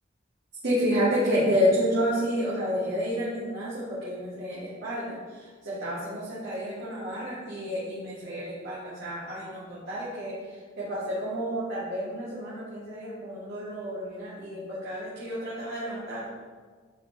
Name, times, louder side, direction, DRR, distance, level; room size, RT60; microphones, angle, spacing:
voice 1, 0.6-10.4 10.8-16.3, equal, 60° right, -10 dB, 1.7 m, -30 dB
10.0 x 4.0 x 2.3 m, 1.5 s
head